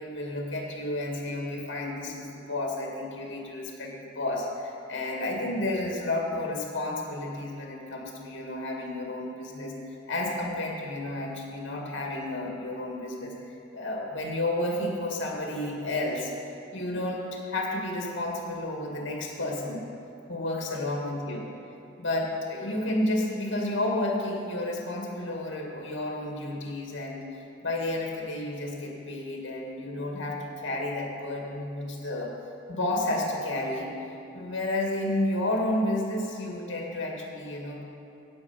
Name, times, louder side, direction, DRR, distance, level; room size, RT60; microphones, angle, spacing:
voice 1, 0.0-9.7 10.1-16.3 16.7-19.8 20.3-21.5 22.0-27.2 27.6-32.3 32.7-37.8, left 1 dB, 70° left, -1 dB, 2.0 m, -31 dB
9.4 x 8.8 x 7.1 m, 2.6 s
head